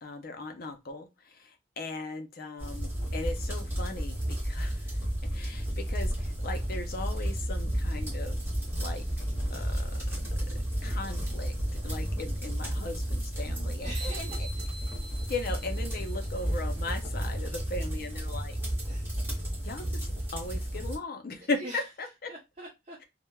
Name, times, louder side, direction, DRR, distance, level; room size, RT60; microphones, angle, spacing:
voice 1, 0.0-4.2 4.4-5.0 5.3-9.1 9.5-10.0 10.8-11.5 11.8-14.3 15.3-18.6 19.6-22.3, left 3 dB, 50° left, 6 dB, 0.5 m, -38 dB
sound 1, 2.6-20.9, equal, 10° right, 1.1 m, -32 dB
voice 2, 13.8-14.9 18.9-19.1 21.4-21.8 22.3-23.1, right 1 dB, 35° right, -3 dB, 0.6 m, -45 dB
sound 2, 13.9-16.6, right 2 dB, 75° right, 0.8 m, -46 dB
3.2 x 2.1 x 2.2 m, 0.23 s
head